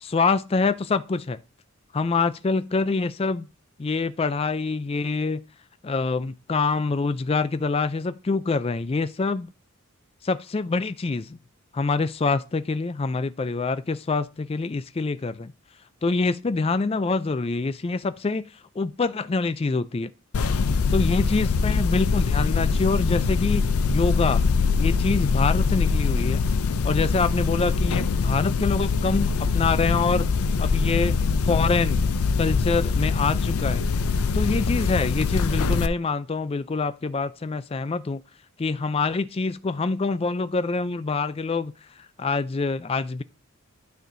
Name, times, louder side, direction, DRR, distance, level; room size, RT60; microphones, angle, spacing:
voice 1, 0.0-1.4 1.9-3.5 3.8-5.4 5.8-9.5 10.2-11.4 11.7-15.5 16.0-18.4 18.8-20.1 20.9-24.4 24.8-26.4 26.8-30.3 30.6-31.2 31.4-32.0 32.4-33.8 34.3-38.2 38.6-43.2, left 4 dB, 25° left, 0.4 m, -25 dB
sound 1, 20.3-35.9, left 4 dB, 90° left, 0.5 m, -23 dB
12.0 x 4.3 x 2.6 m
head